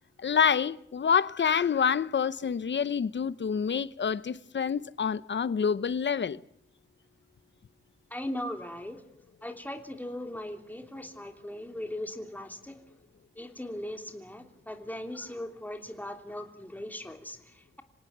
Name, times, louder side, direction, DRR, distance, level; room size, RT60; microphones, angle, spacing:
voice 1, 0.2-6.4, left 7 dB, 65° left, 0.9 m, -27 dB
voice 2, 8.1-9.0 9.4-12.8 13.3-17.8, left 1 dB, 10° left, 3.1 m, -39 dB
26.5 x 18.0 x 8.1 m
wide cardioid pair, 95°, 20 cm